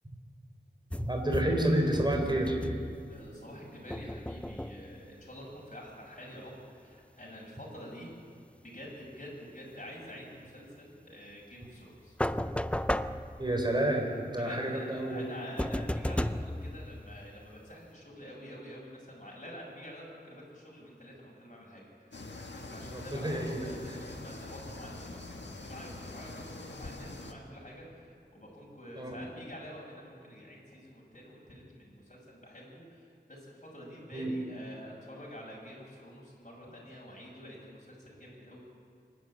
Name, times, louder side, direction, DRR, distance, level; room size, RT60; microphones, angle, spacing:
FX Vent Foley, 0.9-3.4 3.9-5.1 12.2-13.9 15.6-17.6, left 1 dB, 5° left, 0.5 m, -34 dB
voice 1, 1.0-2.6 13.4-15.3 22.8-24.0 29.0-29.2 34.1-34.3, right 1 dB, 25° right, 2 dB, 3.8 m, -30 dB
voice 2, 3.1-8.2 8.6-12.2 14.4-38.6, equal, 45° left, -3 dB, 7.0 m, -48 dB
sound 1, 22.1-27.3, left 2 dB, 80° left, 1.6 m, -44 dB
25.5 x 12.0 x 8.7 m, 2.3 s
wide cardioid pair, 50°, 18 cm